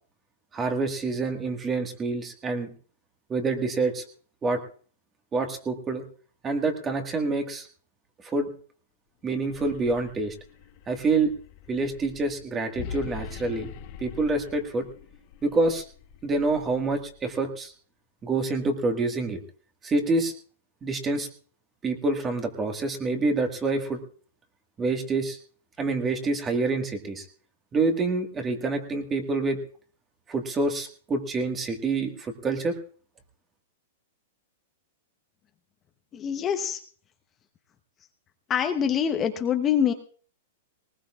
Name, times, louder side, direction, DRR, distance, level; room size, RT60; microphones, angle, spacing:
voice 1, 0.5-2.7 3.3-4.1 4.4-4.6 5.3-6.0 6.4-7.7 8.2-8.5 9.2-10.3 10.9-11.3 11.7-13.7 14.0-14.9 15.4-15.8 16.2-17.7 18.2-19.4 19.8-20.3 20.8-21.3 21.8-24.0 24.8-25.4 25.8-27.3 27.7-29.6 30.3-32.8, right 3 dB, 20° right, 5 dB, 1.8 m, -27 dB
sound 1, 9.3-17.4, left 8 dB, 45° left, 1.2 m, -44 dB
voice 2, 36.1-36.8 38.5-39.9, left 8 dB, 25° left, 6 dB, 1.0 m, -25 dB
19.5 x 19.5 x 2.5 m, 0.44 s
hypercardioid pair, 135°, 0 cm